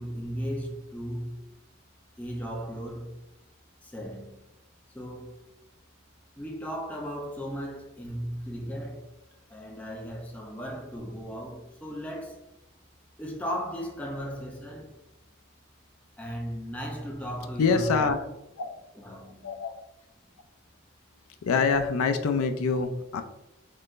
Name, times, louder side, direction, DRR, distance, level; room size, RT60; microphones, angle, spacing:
voice 1, 0.0-1.4 2.2-3.2 3.8-4.4 4.9-5.4 6.4-9.1 9.5-12.5 13.2-14.9 16.2-18.2 19.0-19.6, equal, 5° left, 0.5 m, -36 dB
voice 2, 17.6-18.2 18.6-18.7 19.4-19.7 21.4-23.2, left 5 dB, 85° left, 0.4 m, -25 dB
3.7 x 3.2 x 2.5 m
head